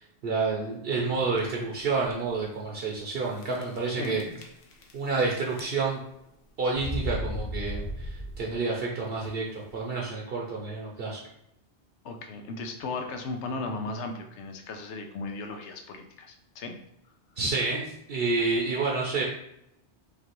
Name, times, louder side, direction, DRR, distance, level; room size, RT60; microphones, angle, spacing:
voice 1, 0.2-4.2 4.9-6.0 6.6-9.5 9.7-11.2 17.4-19.2, right 4 dB, 65° right, -2 dB, 0.8 m, -29 dB
sound 1, 1.0-1.4 2.0-2.1 2.4-2.5 3.4-3.8 4.0-5.2 5.5-6.0 6.7-8.7, equal, 60° left, 0.8 m, -35 dB
voice 2, 3.9-4.3 12.0-16.7, left 3 dB, 90° left, 5 dB, 0.9 m, -36 dB
5.1 x 2.4 x 3.0 m, 0.78 s
omnidirectional pair, 1.1 m